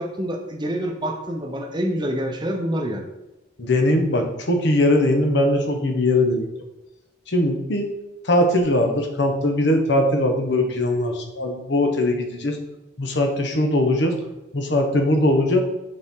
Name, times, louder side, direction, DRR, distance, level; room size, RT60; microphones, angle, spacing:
voice 1, 0.0-3.0, equal, 20° right, 3 dB, 0.7 m, -26 dB
voice 2, 3.6-6.5 7.3-7.9 8.2-12.6 13.0-14.1 14.5-15.6, left 1 dB, 60° left, 4 dB, 1.0 m, -20 dB
6.5 x 4.3 x 3.7 m, 0.98 s
head